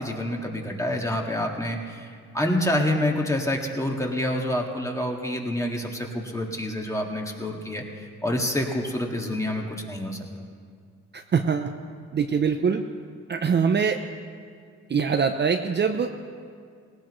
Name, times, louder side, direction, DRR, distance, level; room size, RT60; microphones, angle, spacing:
voice 1, 0.0-10.2, left 1 dB, 10° left, 1 dB, 2.0 m, -27 dB
voice 2, 11.1-11.7 12.1-12.8 13.3-14.0 14.9-16.1, right 6 dB, 35° right, 5 dB, 0.7 m, -23 dB
18.5 x 18.0 x 3.2 m, 2.1 s
cardioid pair, 90°, 30 cm